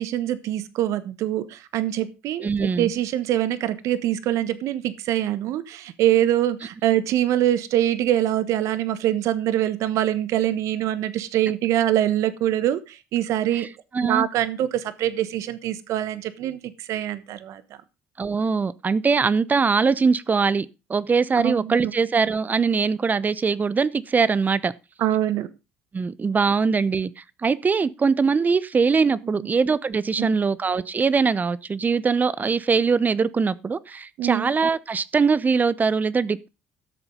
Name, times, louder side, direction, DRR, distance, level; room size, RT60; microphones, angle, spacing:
voice 1, 0.0-13.7 14.0-17.6 21.4-21.8 25.0-25.5 29.4-29.5 30.1-30.3 34.2-34.5, right 12 dB, 70° right, 1.2 m, -24 dB
voice 2, 2.4-2.9 13.9-14.3 18.2-24.7 25.9-27.1 27.4-36.5, right 5 dB, 30° right, 0.8 m, -22 dB
13.0 x 7.0 x 5.1 m
hypercardioid pair, 65°, 5 cm